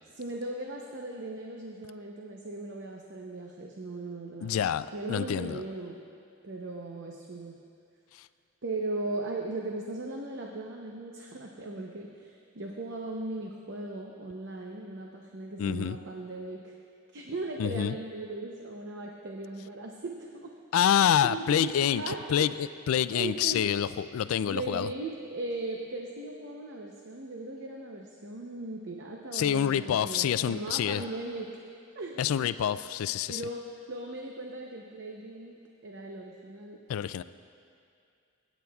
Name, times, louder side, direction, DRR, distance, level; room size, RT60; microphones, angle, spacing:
voice 1, 0.1-4.6 4.9-6.0 6.4-7.6 8.6-16.8 17.1-20.5 21.2-22.5 23.1-23.6 24.5-31.5 31.9-32.2 33.3-33.6 33.9-35.6 35.8-36.8, right 2 dB, 60° right, 0 dB, 0.8 m, -38 dB
voice 2, 4.4-5.6 15.6-16.0 17.6-17.9 20.7-24.9 29.3-31.0 32.2-33.4 36.9-37.2, left 9 dB, 80° left, 15 dB, 0.3 m, -27 dB
24.5 x 9.2 x 2.4 m, 2.4 s
head